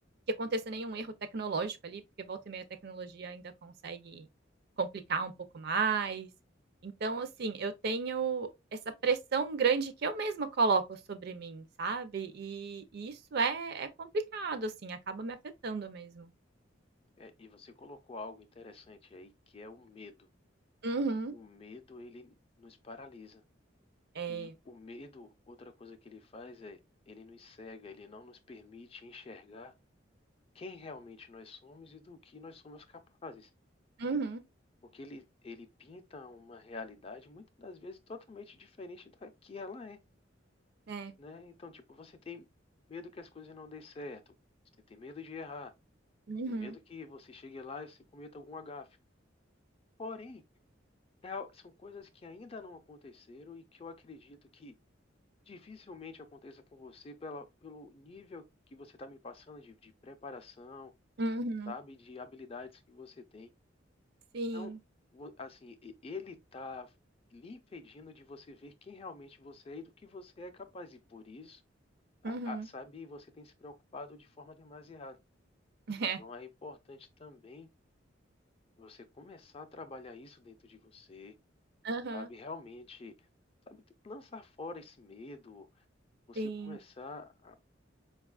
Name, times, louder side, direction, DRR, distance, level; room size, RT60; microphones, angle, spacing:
voice 1, 0.3-4.3 4.8-6.3 6.8-8.5 9.0-15.4 15.6-16.3 20.8-21.3 24.2-24.5 34.0-34.4 40.9-41.1 46.3-46.7 61.2-61.7 64.3-64.8 72.2-72.6 75.9-76.2 81.8-82.3 86.4-86.8, right 4 dB, 55° right, 0.5 m, -34 dB
voice 2, 17.2-20.3 21.3-23.4 24.3-26.8 27.1-29.7 30.5-33.5 34.9-40.0 41.2-42.5 42.9-44.3 44.9-45.7 46.5-49.0 50.0-50.4 51.2-54.7 55.5-60.9 61.7-63.5 64.5-64.7 65.1-66.9 67.3-71.6 72.2-75.2 76.0-77.7 78.8-81.4 82.1-83.3 83.7-85.8 86.3-87.6, left 3 dB, 30° left, 0.4 m, -47 dB
4.7 x 2.3 x 2.3 m
head